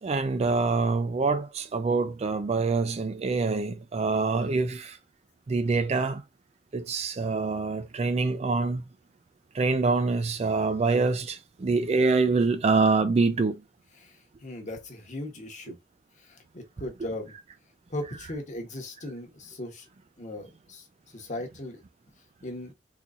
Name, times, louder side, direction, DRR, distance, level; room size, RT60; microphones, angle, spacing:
voice 1, 0.0-5.0 5.5-6.2 6.7-8.8 9.5-13.6, right 4 dB, 35° right, 0.3 m, -25 dB
voice 2, 14.0-15.8 16.2-17.3 17.9-19.9 20.2-21.8 22.4-22.7, left 1 dB, 40° left, 1.0 m, -38 dB
3.8 x 2.9 x 2.4 m
head